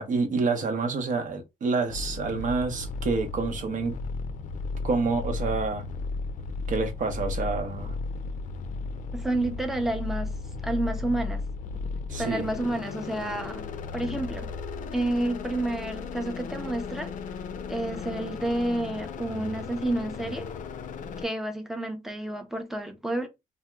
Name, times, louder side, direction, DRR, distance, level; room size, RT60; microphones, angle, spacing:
voice 1, 0.0-3.9 4.8-5.8 6.7-8.0 12.1-12.5, right 4 dB, 60° right, 0.8 m, -28 dB
sound 1, 1.9-21.3, left 4 dB, 60° left, 0.4 m, -35 dB
voice 2, 9.1-10.3 10.6-11.4 12.2-13.6 13.9-14.5 14.9-17.1 17.7-20.5 21.2-23.3, right 1 dB, ahead, 0.5 m, -30 dB
2.7 x 2.1 x 3.4 m
cardioid pair, 130°, 15 cm